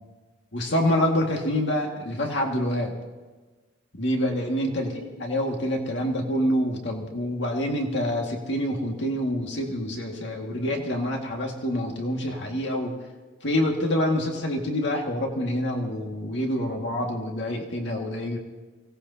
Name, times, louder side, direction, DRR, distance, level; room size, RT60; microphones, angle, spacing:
voice 1, 0.5-2.9 3.9-13.0 13.4-18.4, equal, 80° left, 1 dB, 2.0 m, -26 dB
24.5 x 18.0 x 2.8 m, 1.3 s
head